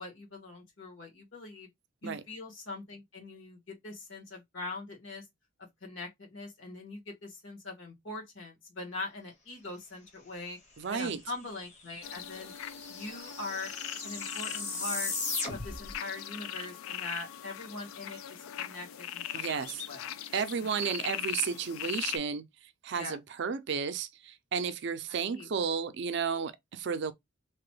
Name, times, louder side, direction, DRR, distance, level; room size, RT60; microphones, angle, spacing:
voice 1, 0.0-1.7 2.0-5.3 5.8-10.6 10.9-12.5 12.9-13.7 14.0-15.1 15.5-20.2 23.0-23.2 25.1-25.5, left 2 dB, 70° left, 1.3 m, -42 dB
voice 2, 10.8-11.2 19.3-19.8 20.3-22.4 22.8-27.1, right 6 dB, 60° right, 0.4 m, -33 dB
sound 1, 11.4-11.5 11.7-15.9, left 3 dB, 35° left, 0.8 m, -37 dB
sound 2, 12.0-22.2, left 10 dB, 85° left, 0.3 m, -40 dB
2.9 x 2.2 x 3.1 m
head